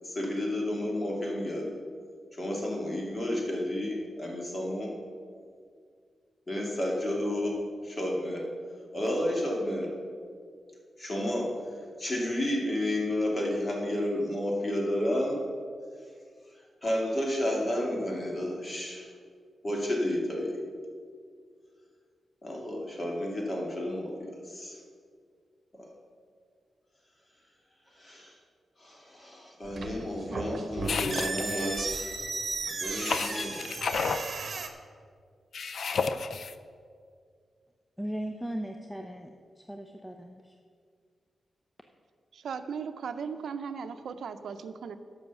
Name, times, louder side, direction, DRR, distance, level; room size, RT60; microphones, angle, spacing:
voice 1, 0.0-1.8 2.3-5.0 6.5-8.5 8.9-9.9 11.0-11.5 12.0-15.4 16.8-19.1 19.6-20.6 22.4-24.8 25.8-25.9 27.9-28.4 28.8-32.3 32.8-33.7 34.1-34.2, left 1 dB, 35° left, -1 dB, 2.4 m, -31 dB
sound 1, 29.6-34.7, right 4 dB, 50° right, 1.0 m, -35 dB
sound 2, 30.8-31.8 33.0-34.3 35.5-36.5, left 5 dB, 65° left, 0.5 m, -32 dB
voice 2, 32.7-33.7 38.0-40.5, right 1 dB, 5° left, 4 dB, 0.6 m, -39 dB
voice 3, 42.3-45.0, right 6 dB, 80° right, 10 dB, 0.6 m, -37 dB
11.0 x 6.3 x 6.9 m, 2.1 s
cardioid pair, 90°, 0 cm